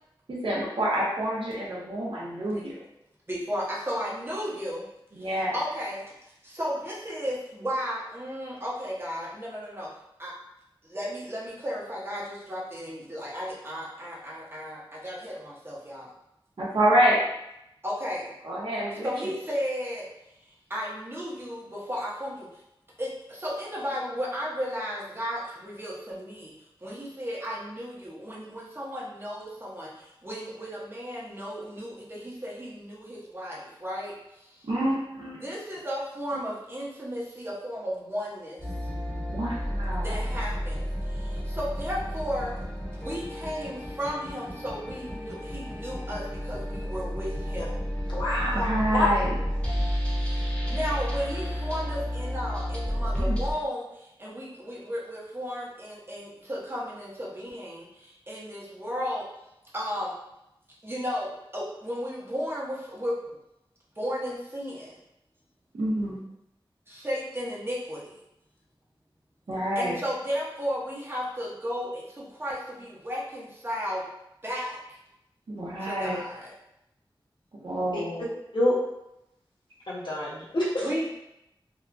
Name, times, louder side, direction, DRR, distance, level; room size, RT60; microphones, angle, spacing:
voice 1, 0.3-2.8 5.1-5.6 16.6-17.2 18.4-19.3 34.7-35.4 39.3-40.2 48.5-49.3 53.2-53.4 65.8-66.2 69.5-70.0 75.5-76.2 77.5-78.3, right 1 dB, 70° right, -6 dB, 0.6 m, -27 dB
voice 2, 3.3-4.9 5.2-9.9 10.2-10.3 10.8-16.1 17.8-18.3 19.0-20.1 20.5-22.6 23.0-26.5 26.8-34.7 35.4-38.7 40.0-42.5 42.9-47.7 50.2-59.2 59.7-60.1 60.8-63.4 64.0-64.9 66.9-68.1 69.8-74.0 74.4-74.8 75.8-76.5 80.8-81.1, equal, 25° right, -5 dB, 0.8 m, -34 dB
sound 1, 38.6-53.5, equal, 15° left, 0.9 m, -31 dB
voice 3, 48.1-48.7 48.9-49.1 77.9-78.0 78.5-78.7 79.9-80.9, left 1 dB, 60° left, -7 dB, 1.0 m, -26 dB
2.8 x 2.3 x 2.5 m, 0.84 s
wide cardioid pair, 80°, 9 cm